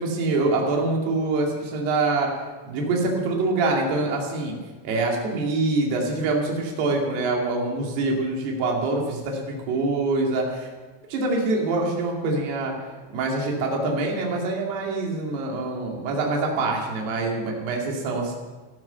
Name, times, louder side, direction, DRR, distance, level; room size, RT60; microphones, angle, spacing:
voice 1, 0.0-2.3 2.6-4.6 4.8-10.7 11.1-12.7 13.1-18.3, right 3 dB, 70° right, 0 dB, 4.3 m, -25 dB
18.5 x 12.5 x 5.8 m, 1.4 s
omnidirectional pair, 5.0 m